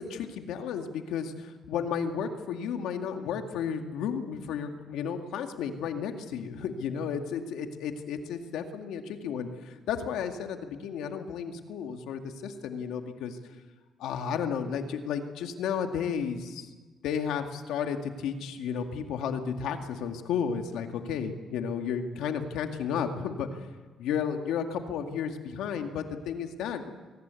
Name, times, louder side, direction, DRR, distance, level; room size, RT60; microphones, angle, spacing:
voice 1, 0.0-13.4 14.0-16.7 17.0-23.7 24.0-26.9, left 7 dB, 85° left, 5 dB, 2.1 m, -33 dB
23.0 x 19.0 x 8.3 m, 1.3 s
cardioid pair, 90°, 0 cm